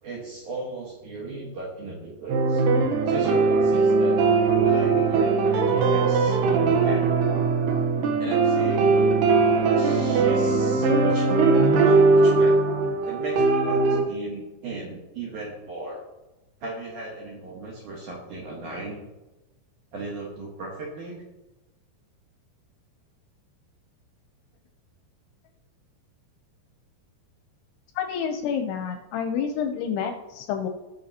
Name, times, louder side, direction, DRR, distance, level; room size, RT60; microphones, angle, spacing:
voice 1, 0.0-2.6 3.1-4.2 4.6-7.1 8.2-9.0 9.6-11.5 11.8-12.6 13.0-16.0 16.6-19.0 19.9-21.2, right 3 dB, 60° right, -3 dB, 2.1 m, -36 dB
sound 1, 2.3-14.0, right 4 dB, 80° right, 2.0 m, -20 dB
voice 2, 28.0-30.7, left 7 dB, 80° left, 6 dB, 2.5 m, -28 dB
18.5 x 6.3 x 2.8 m, 1.1 s
omnidirectional pair, 5.2 m